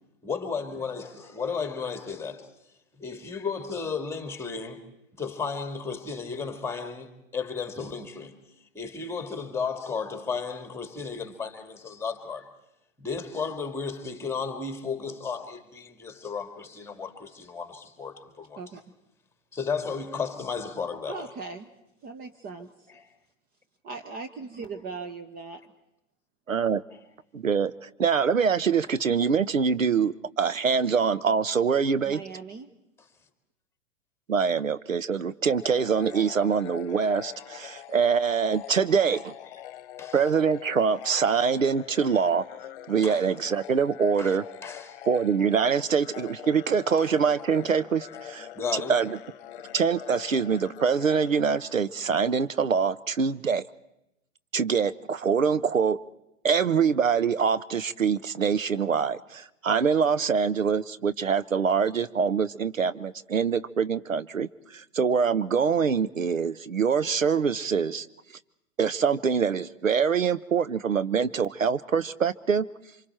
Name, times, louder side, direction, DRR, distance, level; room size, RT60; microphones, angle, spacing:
voice 1, 0.2-2.5 3.0-4.8 5.2-8.4 8.7-12.5 13.0-18.6 19.5-21.3 40.0-40.2 43.0-43.2 44.2-45.0 48.6-49.0, left 5 dB, 5° left, 2.1 m, -34 dB
voice 2, 21.1-21.7 22.0-22.9 23.8-25.6 32.0-32.7, right 4 dB, 25° right, 1.1 m, -39 dB
voice 3, 26.5-26.8 27.3-32.2 34.3-39.3 40.1-42.4 42.9-44.4 45.1-49.2 49.7-53.6 54.5-56.0 56.4-68.1 68.8-72.6, right 6 dB, 85° right, 0.8 m, -24 dB
sound 1, 35.5-52.3, left 12 dB, 45° left, 1.2 m, -44 dB
28.0 x 26.0 x 4.4 m
figure-of-eight pair, 110°, 39 cm